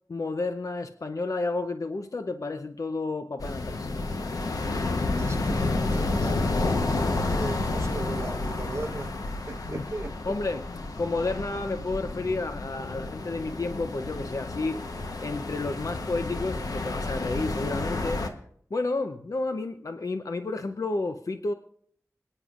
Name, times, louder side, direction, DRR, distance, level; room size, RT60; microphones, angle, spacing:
voice 1, 0.1-3.9 9.7-9.8 10.3-10.6 11.0-14.8 15.2-18.3 18.7-21.5, left 3 dB, 70° left, 0.6 m, -31 dB
sound 1, 3.4-18.3, left 2 dB, 90° left, 1.0 m, -30 dB
voice 2, 4.9-9.2 9.5-10.2, right 2 dB, 50° right, 1.0 m, -38 dB
26.5 x 9.8 x 2.4 m
wide cardioid pair, 50°, 6 cm